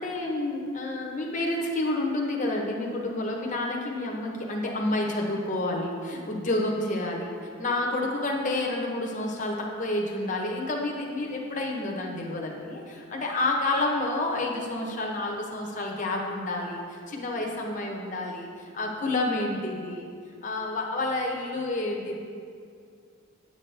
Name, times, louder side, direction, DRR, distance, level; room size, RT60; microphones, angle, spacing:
voice 1, 0.0-20.1 20.4-22.2, left 2 dB, 35° left, -1 dB, 0.9 m, -29 dB
8.2 x 7.9 x 3.3 m, 2.3 s
head